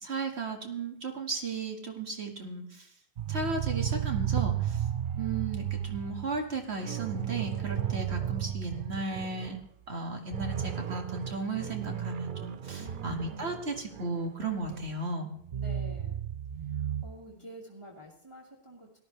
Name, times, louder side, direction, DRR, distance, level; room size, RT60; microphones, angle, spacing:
voice 1, 0.0-2.9 3.3-4.8 5.1-9.6 9.9-15.3, right 3 dB, 75° right, 3 dB, 2.3 m, -35 dB
sound 1, 3.2-9.6 9.9-10.0 10.3-14.9 15.4-17.0, right 10 dB, 55° right, 0.8 m, -34 dB
voice 2, 12.8-13.6 15.5-16.2 16.7-19.0, right 1 dB, 25° right, -6 dB, 2.4 m, -48 dB
18.0 x 13.0 x 3.3 m, 0.70 s
omnidirectional pair, 1.1 m